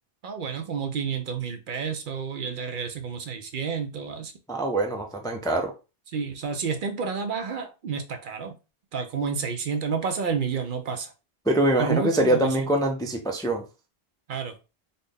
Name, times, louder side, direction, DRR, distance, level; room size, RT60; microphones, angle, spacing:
voice 1, 0.2-4.3 6.1-8.5 8.9-11.1 11.8-12.7 14.3-14.6, right 6 dB, 60° right, 0.6 m, -30 dB
voice 2, 4.5-5.7 11.5-13.6, right 1 dB, 5° left, 0.3 m, -24 dB
4.0 x 2.1 x 3.4 m
omnidirectional pair, 1.0 m